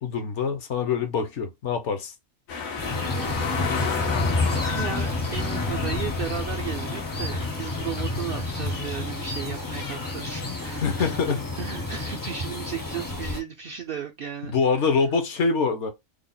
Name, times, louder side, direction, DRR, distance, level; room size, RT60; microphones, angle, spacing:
voice 1, 0.0-2.1 10.8-11.4 14.5-15.9, left 5 dB, 65° left, 0.9 m, -24 dB
sound 1, 2.5-11.3 11.7-11.8, left 4 dB, 85° left, 1.3 m, -32 dB
sound 2, 2.8-13.4, left 2 dB, 25° left, 0.5 m, -30 dB
voice 2, 4.7-11.2 11.5-14.5, right 7 dB, 65° right, 0.6 m, -35 dB
3.3 x 2.1 x 3.7 m
omnidirectional pair, 1.4 m